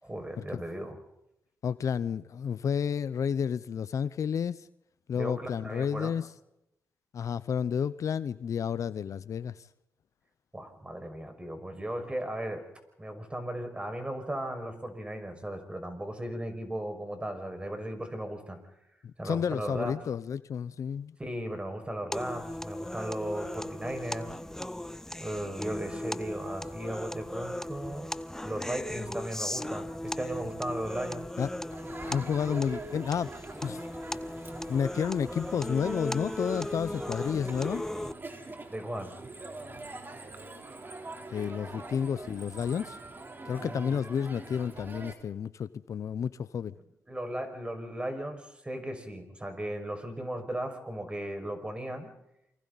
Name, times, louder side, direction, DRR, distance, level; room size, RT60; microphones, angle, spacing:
voice 1, 0.0-1.0 5.1-6.1 10.5-12.7 13.0-18.8 19.2-20.0 21.2-24.3 25.2-28.1 28.4-31.3 38.7-39.2 43.6-44.0 47.1-52.1, right 1 dB, 20° right, 5.9 m, -36 dB
voice 2, 1.6-4.7 5.1-6.2 7.1-9.6 19.2-21.1 31.4-31.5 32.0-33.3 33.6-33.8 34.7-37.9 41.3-43.0 43.4-46.7, left 7 dB, 65° left, 0.8 m, -31 dB
sound 1, 22.1-38.1, left 1 dB, 10° left, 0.7 m, -37 dB
Crowd, 31.7-45.1, right 2 dB, 35° right, 3.8 m, -44 dB
29.0 x 24.0 x 4.2 m
supercardioid pair, 55°, 6 cm